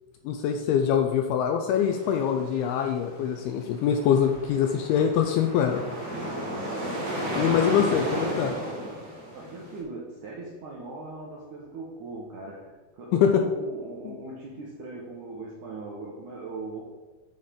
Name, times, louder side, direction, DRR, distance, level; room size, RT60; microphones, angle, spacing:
voice 1, 0.3-5.8 7.2-8.5 13.2-13.4 14.1-14.2, left 8 dB, 80° left, 4 dB, 2.3 m, -24 dB
sound 1, 1.8-9.8, right 1 dB, 35° right, 1.8 m, -34 dB
voice 2, 7.5-8.9 9.3-12.7 12.9-16.8, right 2 dB, 75° right, -3 dB, 1.9 m, -40 dB
9.6 x 4.3 x 5.1 m, 1.3 s
omnidirectional pair, 4.9 m